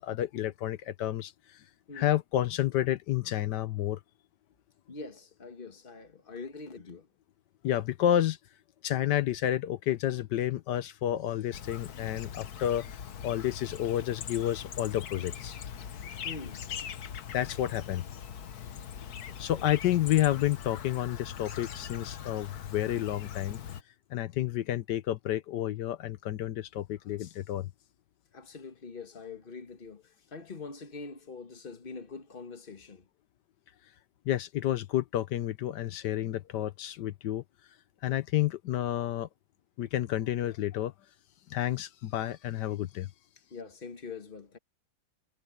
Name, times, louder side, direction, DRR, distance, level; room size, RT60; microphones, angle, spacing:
voice 1, 0.0-1.6 1.9-4.0 7.6-8.4 8.8-15.6 17.3-18.1 19.4-23.6 24.1-27.7 34.3-37.4 38.0-39.3 39.8-40.9 41.5-43.1, left 12 dB, 80° left, 1.4 m, -30 dB
voice 2, 4.9-7.1 16.1-16.6 19.3-19.7 28.3-33.1 43.5-44.6, left 4 dB, 35° left, 1.7 m, -44 dB
Chirp tweet, 11.5-23.8, left 8 dB, 65° left, 1.5 m, -41 dB
omnidirectional pair, 1.8 m